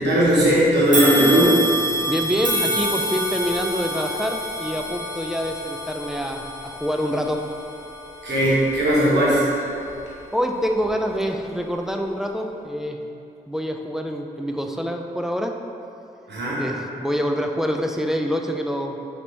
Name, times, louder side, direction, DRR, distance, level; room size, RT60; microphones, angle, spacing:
voice 1, 0.0-1.6 8.2-9.4 16.3-16.6, equal, 75° right, -8 dB, 1.0 m, -18 dB
sound 1, 0.9-10.2 10.7-10.9 11.9-12.0, right 1 dB, 45° right, 1.0 m, -28 dB
voice 2, 2.1-7.4 10.3-13.0 13.5-15.6 16.6-19.0, equal, ahead, 3 dB, 0.4 m, -26 dB
3.3 x 2.9 x 3.9 m, 2.6 s
supercardioid pair, 40°, 18 cm